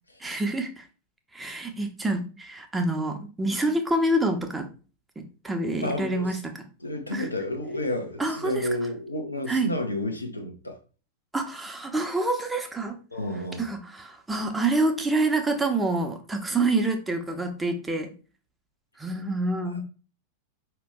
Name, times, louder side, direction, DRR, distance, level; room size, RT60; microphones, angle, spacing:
voice 1, 0.2-0.8 1.3-4.7 5.2-6.4 7.1-7.3 8.2-8.7 9.5-9.7 11.3-13.0 13.6-18.1 19.0-19.8, right 2 dB, 10° right, 0.8 m, -27 dB
voice 2, 5.8-6.4 6.8-10.8 13.1-13.7, left 1 dB, 85° left, 0.8 m, -31 dB
5.0 x 2.9 x 3.6 m
figure-of-eight pair, 90°, 0 cm